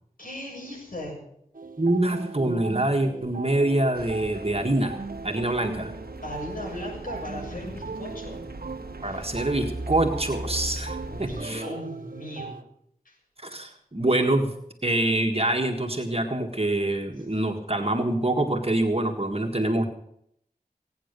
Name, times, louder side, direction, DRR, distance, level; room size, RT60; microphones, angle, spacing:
voice 1, 0.2-1.2 6.2-8.4 9.0-9.3 11.0-12.6 13.0-13.2, left 1 dB, 65° left, -2 dB, 7.4 m, -37 dB
sound 1, 1.6-12.6, right 4 dB, 65° right, 0.7 m, -39 dB
voice 2, 1.8-5.0 5.2-5.9 9.0-11.6 13.4-14.5 14.8-19.8, right 1 dB, 40° right, 3 dB, 1.7 m, -25 dB
sound 2, 3.9-11.5, right 1 dB, 90° right, 1.1 m, -38 dB
17.5 x 9.4 x 6.8 m, 0.73 s
wide cardioid pair, 50°, 15 cm